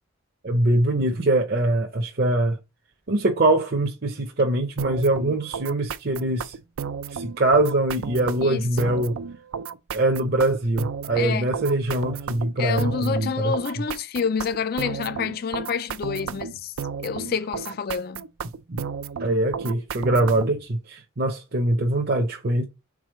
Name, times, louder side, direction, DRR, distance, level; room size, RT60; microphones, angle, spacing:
voice 1, 0.4-2.6 3.1-6.5 7.1-9.2 9.9-13.5 18.7-18.8 19.2-22.6, right 2 dB, 45° right, 0.7 m, -23 dB
sound 1, 4.8-20.6, right 6 dB, 80° right, 0.4 m, -33 dB
voice 2, 8.4-9.0 11.2-11.5 12.6-16.7 17.0-18.2, left 6 dB, 45° left, 0.3 m, -28 dB
4.8 x 3.9 x 5.1 m
head